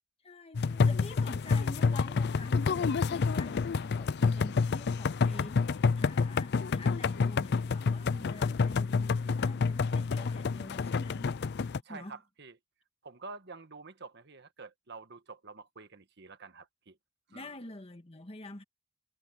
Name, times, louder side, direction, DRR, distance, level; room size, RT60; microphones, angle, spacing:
voice 1, 0.2-12.2 17.3-18.6, left 1 dB, 30° left, 1.6 m, -47 dB
sound 1, 0.5-11.8, left 4 dB, 55° left, 0.4 m, -28 dB
voice 2, 11.8-12.6 13.0-17.0 17.3-17.5, right 4 dB, 55° right, 1.4 m, -48 dB
head